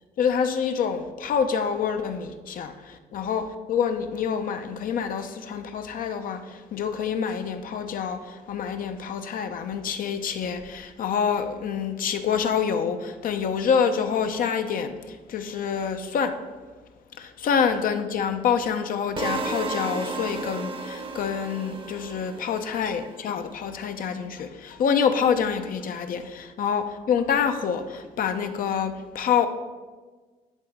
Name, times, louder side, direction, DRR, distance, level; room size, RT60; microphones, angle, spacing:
voice 1, 0.2-16.4 17.2-29.5, left 7 dB, 60° left, 8 dB, 0.7 m, -27 dB
sound 1, 19.2-23.2, right 3 dB, 35° right, 0.8 m, -33 dB
11.0 x 3.9 x 3.6 m, 1.4 s
supercardioid pair, 75°, 16 cm